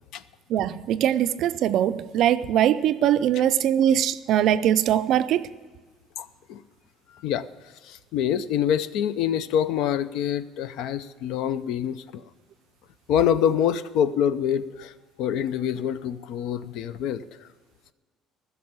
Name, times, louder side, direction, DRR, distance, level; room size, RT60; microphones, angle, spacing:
voice 1, 0.5-5.4, right 10 dB, 50° right, 0.4 m, -22 dB
voice 2, 6.2-6.6 7.2-7.4 7.8-12.2 13.1-14.9 15.2-17.3, left 9 dB, 60° left, 0.5 m, -25 dB
15.0 x 6.9 x 8.8 m
cardioid pair, 180°, 0 cm